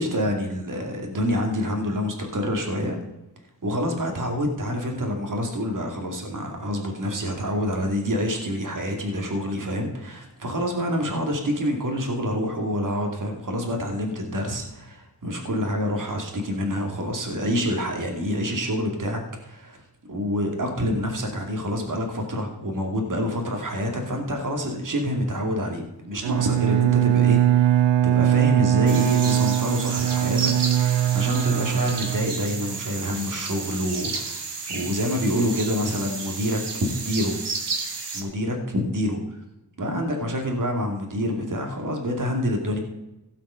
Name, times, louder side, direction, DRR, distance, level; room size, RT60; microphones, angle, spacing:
voice 1, 0.0-3.0 3.6-19.8 20.1-37.4 38.1-39.2 39.8-42.8, equal, 50° right, 2 dB, 2.4 m, -27 dB
Bowed string instrument, 26.2-32.8, right 12 dB, 90° right, 0.6 m, -21 dB
sound 1, 28.9-38.2, right 4 dB, 70° right, 2.0 m, -32 dB
16.5 x 5.8 x 5.6 m, 0.94 s
wide cardioid pair, 90°, 42 cm